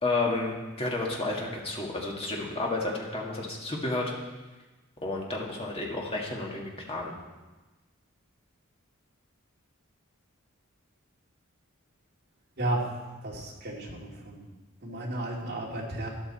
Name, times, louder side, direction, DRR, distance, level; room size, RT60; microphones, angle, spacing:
voice 1, 0.0-4.1 5.0-7.1, left 2 dB, 25° left, -2 dB, 1.9 m, -31 dB
voice 2, 13.2-14.5 14.8-16.1, right 1 dB, 45° right, -3 dB, 2.6 m, -33 dB
12.5 x 11.0 x 4.3 m, 1.2 s
head